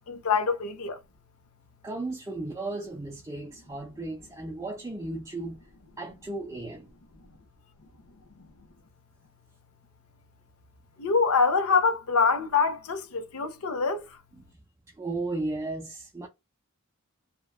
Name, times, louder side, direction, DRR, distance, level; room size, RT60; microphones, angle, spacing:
voice 1, 0.1-1.0 11.0-14.0, left 5 dB, 80° left, 0.6 m, -25 dB
voice 2, 1.8-5.7 6.0-6.9 14.4-14.5 15.0-16.3, right 2 dB, 15° right, 0.4 m, -35 dB
2.8 x 2.2 x 2.3 m
head